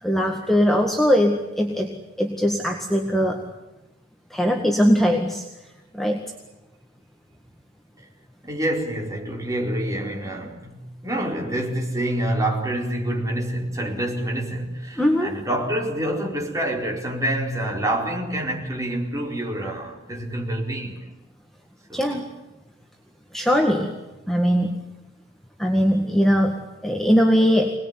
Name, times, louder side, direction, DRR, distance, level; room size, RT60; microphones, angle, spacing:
voice 1, 0.0-3.4 4.3-5.4 5.9-6.2 15.0-15.3 21.9-22.3 23.3-23.9 24.3-24.8 25.6-27.7, equal, ahead, 1.9 m, -20 dB
voice 2, 8.4-21.0 21.9-22.1, right 1 dB, 20° right, 4.6 m, -27 dB
26.0 x 20.0 x 9.8 m
head